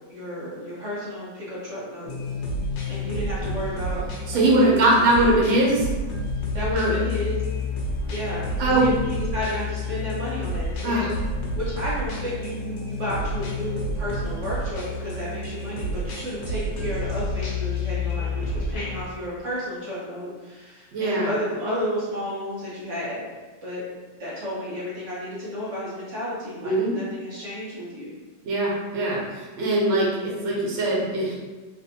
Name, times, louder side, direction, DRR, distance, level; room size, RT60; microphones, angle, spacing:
voice 1, 0.1-2.1 2.9-4.0 4.3-4.7 5.1-5.4 6.5-7.4 8.1-11.2 11.5-23.2 23.6-23.8 24.2-28.1, equal, 60° right, -7 dB, 0.8 m, -32 dB
sound 1, 2.1-19.0, left 2 dB, 70° left, 1.2 m, -29 dB
voice 2, 4.3-5.9 6.7-6.9 8.6-8.8 10.8-11.1 20.9-21.3 26.6-26.9 28.4-31.4, right 2 dB, 85° right, -4 dB, 1.5 m, -21 dB
3.3 x 2.6 x 2.6 m, 1.3 s
omnidirectional pair, 2.1 m